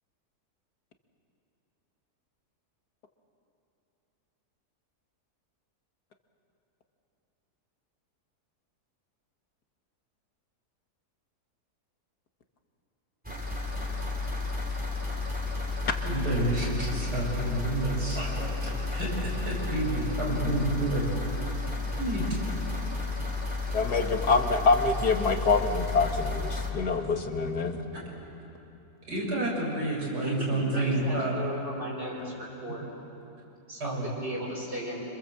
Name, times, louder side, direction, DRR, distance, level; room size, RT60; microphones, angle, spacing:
sound 1, 13.2-26.7, left 3 dB, 5° right, 4.0 m, -32 dB
voice 1, 16.0-21.0 22.0-22.3 29.1-31.4 32.7-32.8 33.8-34.1, right 1 dB, 85° right, -3 dB, 7.2 m, -29 dB
voice 2, 23.7-27.8, left 4 dB, 80° left, 5 dB, 2.3 m, -25 dB
voice 3, 30.2-32.8 33.7-35.0, right 1 dB, 40° right, -6 dB, 4.9 m, -36 dB
27.0 x 26.5 x 7.7 m, 2.8 s
omnidirectional pair, 1.7 m